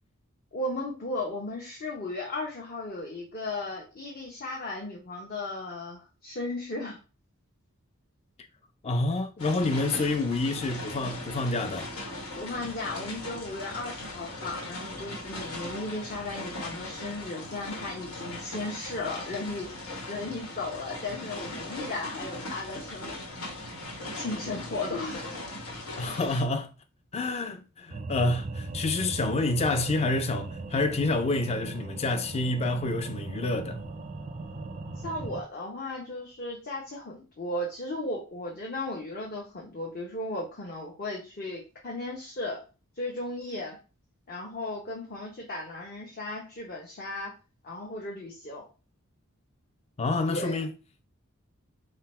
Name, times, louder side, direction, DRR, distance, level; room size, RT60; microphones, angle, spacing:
voice 1, 0.5-7.0 12.3-19.7 20.1-23.2 24.1-25.3 35.0-42.6 43.0-43.8 44.3-47.3 47.6-48.6 50.3-50.6, left 2 dB, 45° left, 0.8 m, -35 dB
voice 2, 8.8-11.9 26.0-26.7 27.1-33.8 50.0-50.7, left 2 dB, 30° left, 0.4 m, -28 dB
sound 1, 9.4-26.4, left 1 dB, 90° left, 1.3 m, -39 dB
sound 2, 27.9-35.4, right 3 dB, 35° right, 0.4 m, -39 dB
3.8 x 2.1 x 4.2 m
head